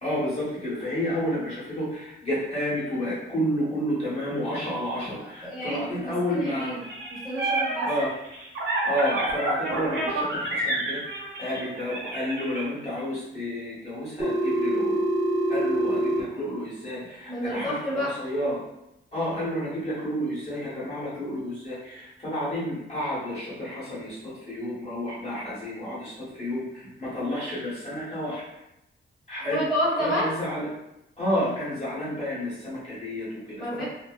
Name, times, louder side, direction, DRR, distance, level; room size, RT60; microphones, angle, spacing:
voice 1, 0.0-6.8 7.8-8.1 8.8-11.0 11.4-15.0 15.5-18.6 19.1-28.4 29.3-29.6 30.0-30.7 31.2-33.8, equal, 30° left, -9 dB, 1.2 m, -30 dB
voice 2, 5.2-6.8 7.1-7.9 17.3-18.2 29.4-30.3 33.6-33.8, equal, ahead, -10 dB, 1.0 m, -29 dB
sound 1, 6.8-12.6, right 2 dB, 70° right, 1.0 m, -29 dB
Telephone, 14.2-16.2, right 1 dB, 15° right, 0.3 m, -24 dB
2.6 x 2.1 x 2.3 m, 0.86 s
wide cardioid pair, 115°, 21 cm